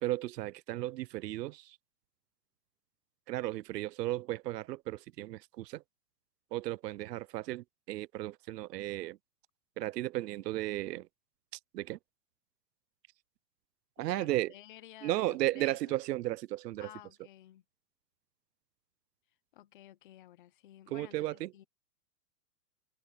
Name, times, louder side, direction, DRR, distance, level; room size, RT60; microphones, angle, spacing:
voice 1, 0.0-1.8 3.3-5.8 6.5-9.2 9.8-11.1 11.5-12.0 14.0-14.5 15.0-16.9 20.9-21.5, right 16 dB, 85° right, 0.7 m, -35 dB
voice 2, 14.0-16.0 16.8-17.6 19.5-21.6, left 13 dB, 35° left, 0.7 m, -53 dB
supercardioid pair, 180°, 47 cm